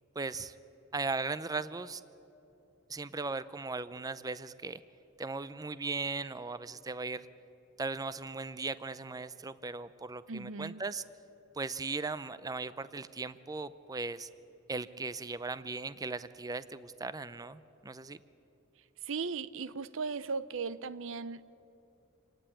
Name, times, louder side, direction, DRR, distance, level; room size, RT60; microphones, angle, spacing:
voice 1, 0.2-0.5 0.9-2.0 2.9-4.8 5.2-7.3 7.8-11.0 11.5-14.3 14.7-18.2, right 3 dB, 20° right, 14 dB, 0.5 m, -38 dB
voice 2, 10.3-10.8 19.1-21.4, right 4 dB, 70° right, 16 dB, 0.7 m, -37 dB
27.0 x 18.5 x 9.0 m, 2.9 s
head